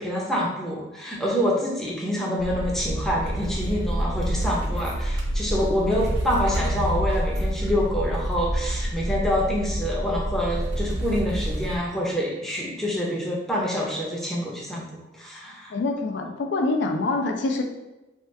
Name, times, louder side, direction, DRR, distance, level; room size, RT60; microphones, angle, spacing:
voice 1, 0.0-15.7, equal, ahead, -4 dB, 0.5 m, -26 dB
sound 1, 2.4-11.8, equal, 75° right, 0.6 m, -27 dB
voice 2, 15.7-17.6, left 3 dB, 75° left, 3 dB, 0.4 m, -25 dB
2.9 x 2.3 x 3.2 m, 1.0 s
head